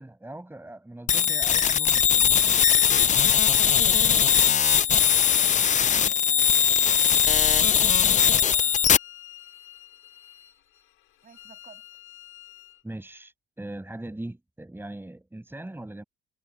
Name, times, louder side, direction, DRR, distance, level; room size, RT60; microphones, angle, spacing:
voice 1, 0.0-2.6 5.9-6.4 7.6-7.8 12.8-16.0, right 1 dB, 10° right, 6.4 m, -40 dB
sound 1, 1.1-9.0, left 8 dB, 35° left, 0.5 m, -20 dB
voice 2, 3.8-5.4 6.1-7.0 8.3-8.7 11.2-12.0, right 6 dB, 45° right, 7.8 m, -53 dB
Bowed string instrument, 7.4-12.8, left 14 dB, 80° left, 6.2 m, -49 dB
supercardioid pair, 80°, 21 cm